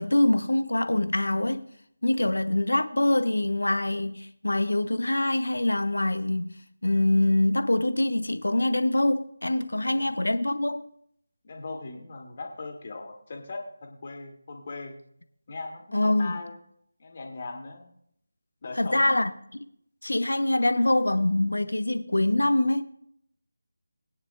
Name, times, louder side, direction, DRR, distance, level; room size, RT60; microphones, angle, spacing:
voice 1, 0.0-1.7 2.0-6.5 6.8-10.9 15.9-16.4 18.8-19.3 20.0-22.8, left 1 dB, 70° left, 0.9 m, -24 dB
voice 2, 9.7-10.1 11.4-15.0 15.5-16.6 17.0-17.9 18.6-19.2, left 3 dB, 35° left, 2.4 m, -39 dB
21.0 x 9.7 x 2.5 m
figure-of-eight pair, 160°, 0 cm